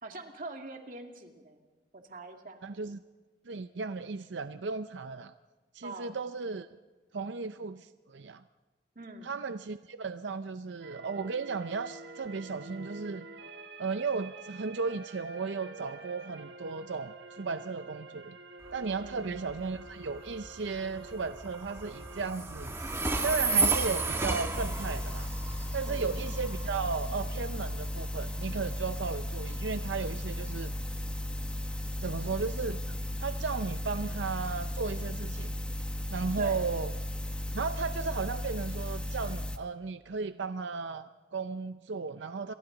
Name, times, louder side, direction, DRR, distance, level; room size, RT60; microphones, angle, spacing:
voice 1, 0.0-1.6 1.9-2.6 5.8-6.2 9.0-9.3 19.0-19.3 25.8-26.1 36.4-36.6, right 2 dB, 50° right, 3 dB, 2.2 m, -43 dB
voice 2, 2.6-3.0 3.5-5.3 5.7-6.7 7.1-8.4 9.2-13.3 13.8-18.4 18.7-22.7 23.2-25.3 25.7-30.7 32.0-35.5 36.1-36.9 37.5-42.5, right 4 dB, 85° right, 10 dB, 0.6 m, -35 dB
sound 1, 10.8-22.3, right 2 dB, 70° right, 1.5 m, -48 dB
Train, 18.6-33.4, right 3 dB, 15° right, 1.6 m, -34 dB
sound 2, 24.5-39.6, left 1 dB, 5° left, 0.9 m, -35 dB
29.0 x 23.0 x 4.0 m, 1.3 s
head